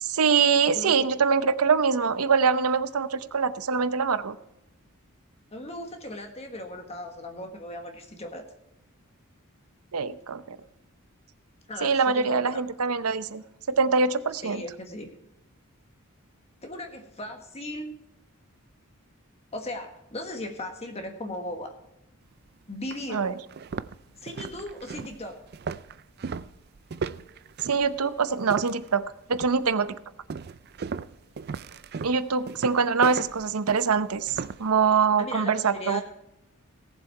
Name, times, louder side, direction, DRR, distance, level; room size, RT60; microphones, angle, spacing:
voice 1, 0.0-4.4 9.9-10.6 11.8-14.6 23.1-23.3 27.6-29.0 29.3-30.0 32.0-36.0, right 5 dB, 85° right, 13 dB, 0.7 m, -24 dB
voice 2, 5.5-8.4 11.7-12.6 14.3-15.1 16.6-17.9 19.5-21.7 22.7-23.3 24.2-25.5 35.2-36.0, left 1 dB, 30° left, 4 dB, 1.4 m, -37 dB
sound 1, 22.3-22.4 22.9-23.0 23.5-29.0 29.3-29.7 30.3-34.7, right 5 dB, 45° right, 0.4 m, -36 dB
18.0 x 7.5 x 4.5 m, 0.91 s
head